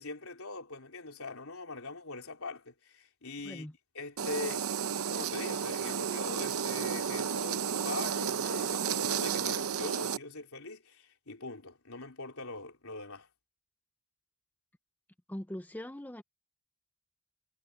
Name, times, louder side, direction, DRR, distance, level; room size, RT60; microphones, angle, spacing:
voice 1, 0.0-3.7 3.9-4.7 5.1-13.3, left 3 dB, 75° left, 3.8 m, -42 dB
sound 1, 4.2-10.2, right 7 dB, 80° right, 0.7 m, -32 dB
voice 2, 15.3-16.2, left 1 dB, 10° left, 0.6 m, -41 dB
head